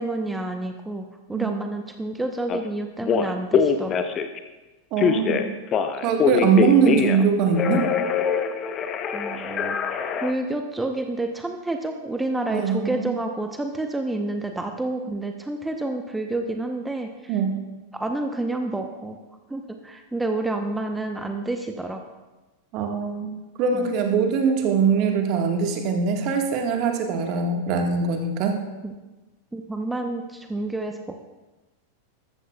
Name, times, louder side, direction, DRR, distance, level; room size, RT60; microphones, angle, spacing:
voice 1, 0.0-4.0 5.3-5.6 9.1-9.8 10.2-17.4 17.9-19.2 19.5-22.0 23.7-23.9 28.8-29.0 29.5-31.3, right 2 dB, 5° right, 5 dB, 0.8 m, -29 dB
Telephone, 2.5-2.6 3.0-4.4 5.0-7.3 7.5-10.3, left 7 dB, 30° left, 0.8 m, -23 dB
voice 2, 4.9-5.5 6.0-7.9 12.5-13.2 17.3-17.5 22.7-28.6, right 6 dB, 40° right, 3 dB, 1.6 m, -22 dB
14.0 x 13.0 x 2.3 m, 1.1 s
figure-of-eight pair, 90°, 0 cm